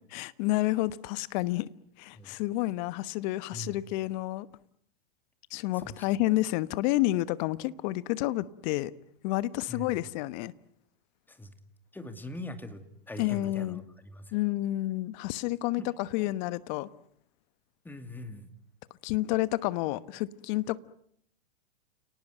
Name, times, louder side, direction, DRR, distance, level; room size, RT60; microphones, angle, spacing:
voice 1, 0.1-1.7 2.0-4.5 5.5-8.9 9.2-10.5 13.2-13.8 14.3-16.9 19.0-20.8, left 17 dB, 45° left, 17 dB, 1.2 m, -30 dB
voice 2, 11.9-14.4 15.8-15.9 17.8-18.5, left 1 dB, 5° left, 9 dB, 2.5 m, -42 dB
30.0 x 19.0 x 9.2 m, 0.71 s
hypercardioid pair, 120°, 31 cm